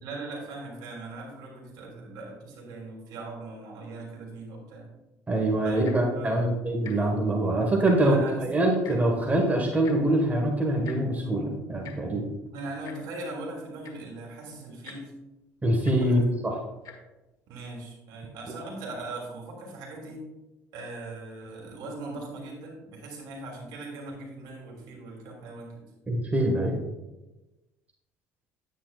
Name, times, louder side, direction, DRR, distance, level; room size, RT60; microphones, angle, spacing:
voice 1, 0.0-4.9 5.6-5.9 6.1-6.5 8.0-8.4 12.5-15.1 16.0-16.2 17.5-20.3 20.7-25.7, right 2 dB, 65° right, -2 dB, 3.0 m, -40 dB
voice 2, 5.3-12.3 15.6-16.6 26.1-26.8, right 1 dB, 20° right, 0 dB, 1.6 m, -24 dB
Tick-tock, 5.7-6.1 6.8-7.0 7.3-7.4 7.7-8.2 8.8-9.0 9.8-10.0 10.8-11.0 11.8-12.0 12.8-13.0 13.6-13.7 13.8-14.1 14.8-15.0 15.8-16.0 16.8-17.0 17.7-17.8, left 8 dB, 55° left, 1.5 m, -45 dB
9.9 x 9.0 x 2.5 m, 1.0 s
hypercardioid pair, 65°, 7 cm